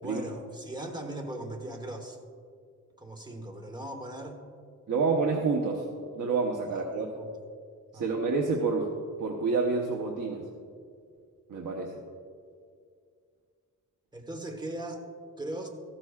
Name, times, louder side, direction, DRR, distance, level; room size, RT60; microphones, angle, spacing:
voice 1, 0.0-2.2 3.0-4.4 6.7-7.3 7.9-8.1 14.1-15.1 15.4-15.7, right 1 dB, 15° right, 4 dB, 1.1 m, -39 dB
voice 2, 4.9-5.8 6.2-7.1 7.9-8.9 9.2-10.5 11.5-12.0, right 4 dB, 75° right, 0 dB, 1.0 m, -28 dB
14.5 x 13.0 x 2.4 m, 2.2 s
wide cardioid pair, 135°, 32 cm